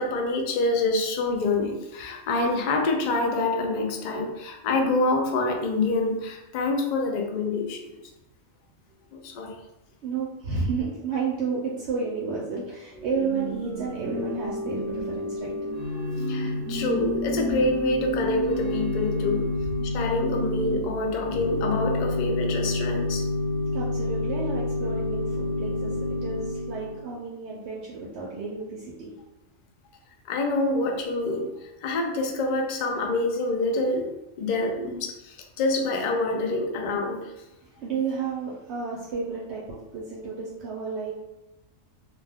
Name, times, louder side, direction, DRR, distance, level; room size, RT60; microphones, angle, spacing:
voice 1, 0.0-8.0 9.1-9.5 16.3-19.5 19.8-23.2 30.3-37.3, left 2 dB, 85° left, 2 dB, 0.4 m, -26 dB
voice 2, 10.0-15.6 23.7-29.1 37.6-41.1, right 4 dB, 65° right, -4 dB, 0.8 m, -31 dB
Organ / Church bell, 12.9-27.1, left 1 dB, 10° left, 0.5 m, -29 dB
2.4 x 2.2 x 3.4 m, 0.96 s
omnidirectional pair, 1.3 m